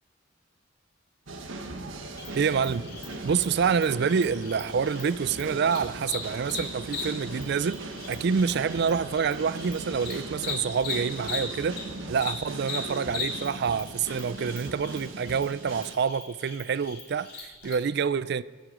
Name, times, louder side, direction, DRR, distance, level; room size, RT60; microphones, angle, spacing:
sound 1, 1.3-15.9, right 2 dB, 80° right, 1.4 m, -39 dB
Cricket, 2.2-11.8 12.1-17.7, left 6 dB, 55° left, 4.3 m, -39 dB
voice 1, 2.4-2.9 3.2-11.8 12.1-18.4, right 6 dB, 55° right, 0.4 m, -27 dB
23.5 x 7.9 x 5.0 m
head